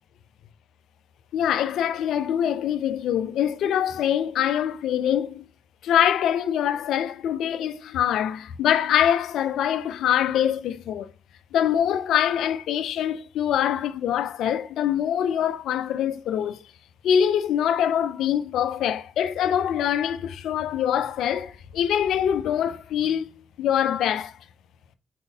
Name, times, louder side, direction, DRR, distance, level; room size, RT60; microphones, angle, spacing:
voice 1, 1.3-5.4 5.8-11.1 11.5-16.6 17.0-23.3 23.6-24.4, left 9 dB, 85° left, 0.4 m, -24 dB
4.4 x 3.7 x 2.7 m
supercardioid pair, 50°, 0 cm